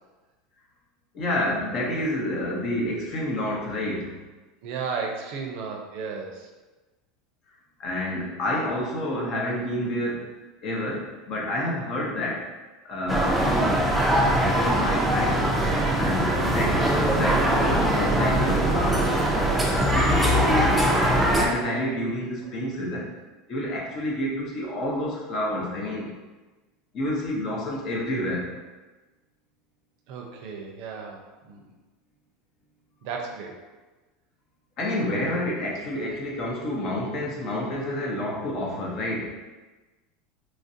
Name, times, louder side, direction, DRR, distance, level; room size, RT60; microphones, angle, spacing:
voice 1, 1.1-4.2 7.8-10.2 10.6-12.5 12.8-13.9 14.3-15.5 15.9-19.2 19.7-23.1 23.5-26.1 26.9-28.5 34.8-39.3, left 1 dB, 45° left, -3 dB, 0.8 m, -29 dB
voice 2, 4.6-6.3 30.1-31.7 33.0-33.6, right 5 dB, 65° right, 1 dB, 0.5 m, -34 dB
sound 1, 13.1-21.5, right 1 dB, 10° right, 0.4 m, -22 dB
3.1 x 2.5 x 2.6 m, 1.2 s
supercardioid pair, 115°, 0 cm